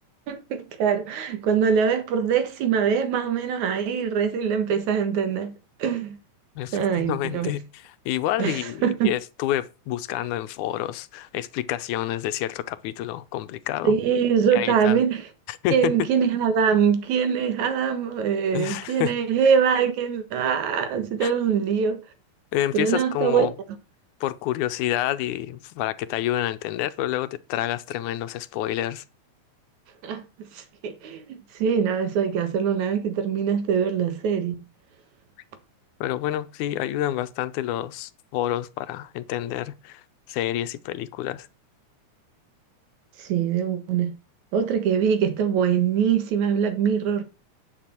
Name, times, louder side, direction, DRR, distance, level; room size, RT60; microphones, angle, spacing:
voice 1, 0.3-5.5 5.8-6.2 6.7-7.5 8.4-9.1 13.8-15.2 15.7-22.0 22.7-23.5 30.0-30.3 30.5-31.2 31.5-34.5 43.2-44.1 44.5-47.2, right 7 dB, 75° right, 2.9 m, -23 dB
voice 2, 6.6-14.0 14.5-15.0 15.5-16.1 18.5-19.2 21.2-21.3 22.5-23.5 24.2-29.0 36.0-41.5, left 13 dB, 90° left, 2.2 m, -28 dB
9.6 x 6.7 x 4.4 m
omnidirectional pair, 3.4 m